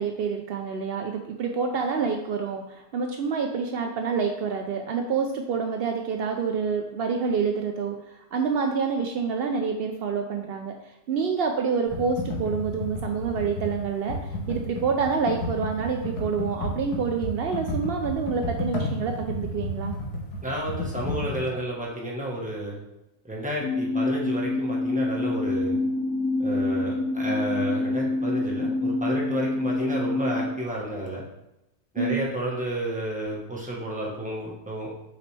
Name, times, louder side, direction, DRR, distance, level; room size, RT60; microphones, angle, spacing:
voice 1, 0.0-10.7 11.1-19.9 32.0-32.3, right 5 dB, 80° right, 3 dB, 0.5 m, -27 dB
Computer keyboard, 11.9-21.4, left 1 dB, 85° left, 1.7 m, -32 dB
voice 2, 20.4-22.8 23.2-25.8 26.4-31.2 31.9-34.9, right 1 dB, 5° right, -3 dB, 1.1 m, -31 dB
sound 1, 23.6-30.5, left 2 dB, 55° left, 1.5 m, -26 dB
5.9 x 5.0 x 3.3 m, 0.89 s
omnidirectional pair, 1.6 m